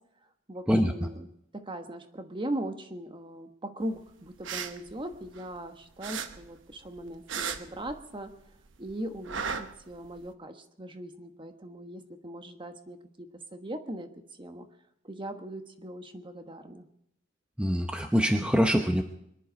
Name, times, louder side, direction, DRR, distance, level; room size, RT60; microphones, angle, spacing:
voice 1, 0.5-8.3 8.8-14.1 14.4-14.7 15.0-16.9, right 1 dB, 25° right, 7 dB, 1.3 m, -39 dB
sound 1, 4.3-5.7 6.0-8.4 8.7-10.3, right 6 dB, 70° right, 0.9 m, -36 dB
voice 2, 17.6-19.0, equal, 5° right, 4 dB, 0.8 m, -24 dB
24.0 x 11.0 x 5.2 m, 0.77 s
head